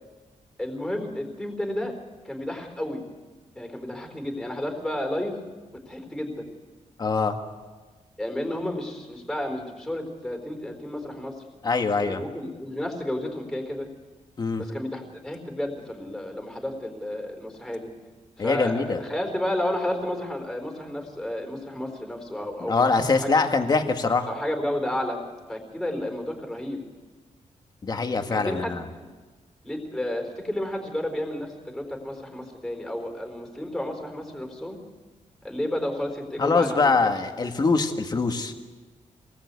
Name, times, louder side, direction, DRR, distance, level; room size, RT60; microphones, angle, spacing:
voice 1, 0.6-1.9 2.2-3.0 3.6-5.4 5.9-6.5 8.2-11.4 12.0-13.9 14.6-17.9 18.4-23.5 24.3-25.2 25.5-26.8 28.3-29.1 29.6-34.8 35.4-36.9, left 1 dB, 5° left, 3 dB, 4.1 m, -31 dB
voice 2, 7.0-7.4 11.6-12.2 14.4-14.6 18.4-19.0 22.7-24.3 27.8-28.8 36.4-38.5, left 4 dB, 30° left, 5 dB, 1.8 m, -23 dB
27.0 x 20.0 x 8.4 m, 1.4 s
wide cardioid pair, 175°, 13 cm